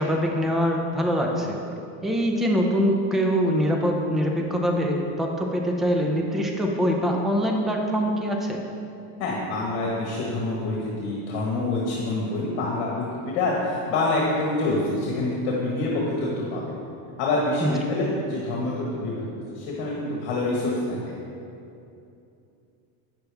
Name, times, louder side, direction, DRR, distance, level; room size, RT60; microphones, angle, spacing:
voice 1, 0.0-1.6 2.0-8.6 17.6-17.8, equal, ahead, 1 dB, 0.5 m, -24 dB
voice 2, 9.2-16.8 17.2-19.2 19.5-21.1, left 2 dB, 60° left, -3 dB, 1.5 m, -26 dB
9.1 x 6.7 x 3.4 m, 2.7 s
supercardioid pair, 135°, 43 cm